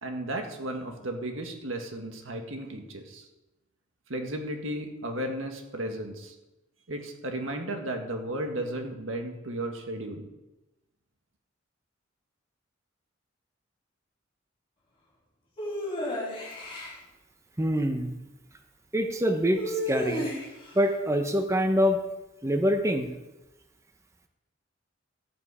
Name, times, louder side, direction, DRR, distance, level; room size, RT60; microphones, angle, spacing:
voice 1, 0.0-3.3 4.1-6.4 6.9-10.3, right 1 dB, 80° right, 4 dB, 1.8 m, -34 dB
sound 1, 15.6-16.9 19.5-20.7, equal, 30° left, 4.2 m, -32 dB
voice 2, 17.6-18.1 18.9-20.3 20.7-22.0 22.4-23.1, equal, 15° right, 5 dB, 0.9 m, -25 dB
13.0 x 8.4 x 4.9 m, 0.98 s
head